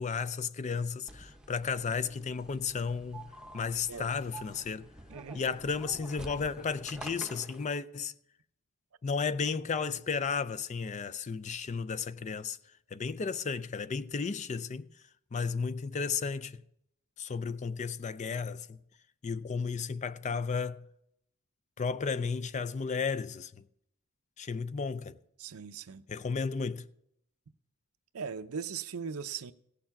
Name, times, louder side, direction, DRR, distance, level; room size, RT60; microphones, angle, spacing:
voice 1, 0.0-4.9 5.3-8.1 9.0-12.6 12.9-14.9 15.3-16.6 17.2-18.8 19.2-20.9 21.8-23.6 24.4-25.2 26.1-26.9, left 5 dB, 35° left, 0.4 m, -33 dB
sound 1, 1.1-7.6, right 1 dB, 5° right, 0.8 m, -49 dB
voice 2, 5.1-5.4 25.4-26.0 28.1-29.5, right 6 dB, 85° right, 0.6 m, -39 dB
16.5 x 6.7 x 5.8 m
head